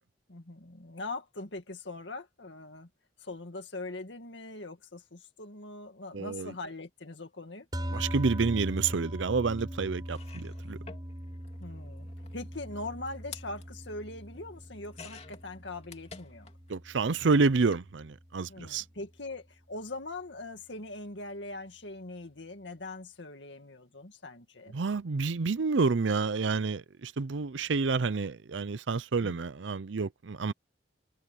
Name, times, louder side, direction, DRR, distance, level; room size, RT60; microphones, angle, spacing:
voice 1, 0.3-2.9 3.2-7.7 11.6-12.1 12.3-16.5 18.5-24.7 29.2-29.4, left 2 dB, 75° left, 2.0 m, -42 dB
voice 2, 6.1-6.5 7.9-10.8 16.7-18.8 24.7-30.5, right 4 dB, 85° right, 0.6 m, -29 dB
sound 1, 7.7-18.2, equal, 20° right, 4.3 m, -40 dB
sound 2, 9.6-9.7 10.0-16.8 17.0-17.9 18.9-19.0 19.3-19.4, left 5 dB, 35° left, 2.7 m, -52 dB
head